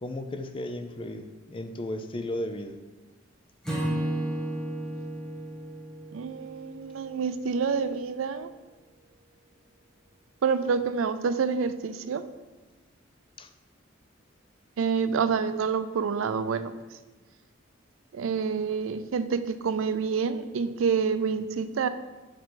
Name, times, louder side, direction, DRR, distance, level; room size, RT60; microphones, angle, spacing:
voice 1, 0.0-2.7 13.4-13.5, left 1 dB, 25° left, 7 dB, 0.4 m, -35 dB
Acoustic guitar / Strum, 3.6-7.0, right 1 dB, 5° left, 1.5 m, -32 dB
voice 2, 6.1-8.5 10.4-12.2 14.8-16.7 18.1-21.9, right 5 dB, 85° right, 12 dB, 0.4 m, -27 dB
6.5 x 4.7 x 3.8 m, 1.2 s
head